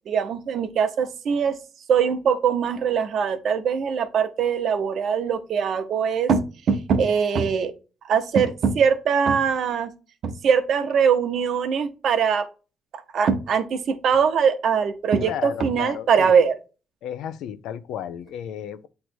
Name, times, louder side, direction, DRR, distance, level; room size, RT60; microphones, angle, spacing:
voice 1, 0.1-1.5 1.9-7.7 8.1-9.9 10.2-12.5 13.1-16.5, right 6 dB, 65° right, 0.9 m, -22 dB
voice 2, 15.2-16.3 17.0-18.9, left 9 dB, 85° left, 0.5 m, -33 dB
7.9 x 3.2 x 4.4 m
cardioid pair, 90°, 0 cm